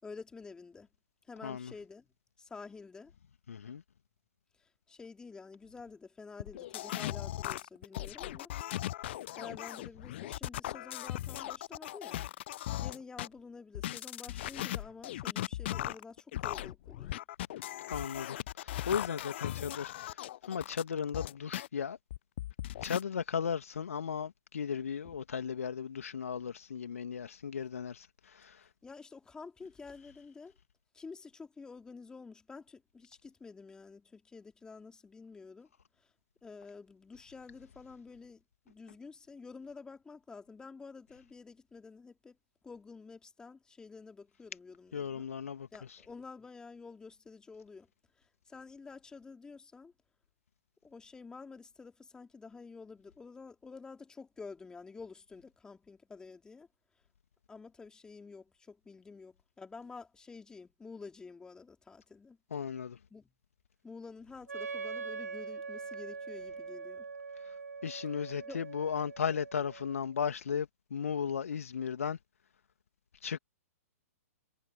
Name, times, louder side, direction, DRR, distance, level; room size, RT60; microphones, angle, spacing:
voice 1, 0.0-0.9 1.3-2.1 2.4-3.1 4.9-8.5 9.3-12.2 12.7-17.2 28.8-30.5 30.9-35.7 36.4-42.4 42.6-45.3 45.7-47.9 48.5-49.9 50.8-56.7 57.5-62.4 63.1-63.3 63.8-67.1 68.4-68.6, left 4 dB, 10° left, 3.4 m, -49 dB
voice 2, 1.4-1.7 3.5-3.8 17.9-22.0 22.8-28.7 44.9-46.0 62.5-63.0 67.5-67.6 67.8-72.2 73.2-73.4, left 7 dB, 65° left, 2.5 m, -36 dB
sound 1, 6.4-13.3 13.7-21.7 22.1-23.0, left 14 dB, 45° left, 0.7 m, -38 dB
Wind instrument woodwind instrument, 64.5-70.1, right 4 dB, 80° right, 0.9 m, -43 dB
figure-of-eight pair, 115°, 8 cm